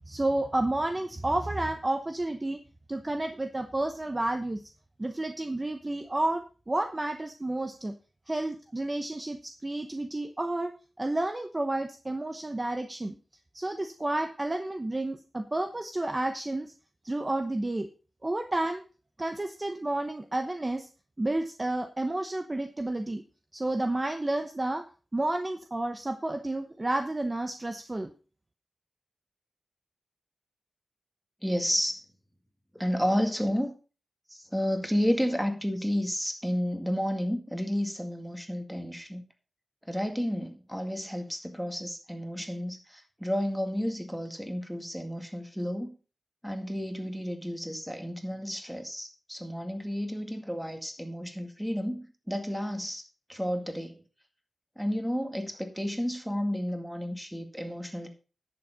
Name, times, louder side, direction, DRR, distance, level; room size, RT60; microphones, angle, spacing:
voice 1, 0.1-2.6 2.9-4.6 5.0-7.9 8.3-10.7 11.0-13.2 13.5-16.7 17.0-17.9 18.2-18.8 19.2-20.9 21.2-23.2 23.5-24.9 25.1-28.1, right 2 dB, 25° right, 7 dB, 0.9 m, -31 dB
voice 2, 31.4-32.0 32.7-33.8 34.3-39.2 39.9-46.0 46.4-53.0 53.3-54.0 54.8-58.1, equal, ahead, 5 dB, 2.0 m, -31 dB
10.5 x 7.1 x 5.1 m, 0.35 s
wide cardioid pair, 80°, 0 cm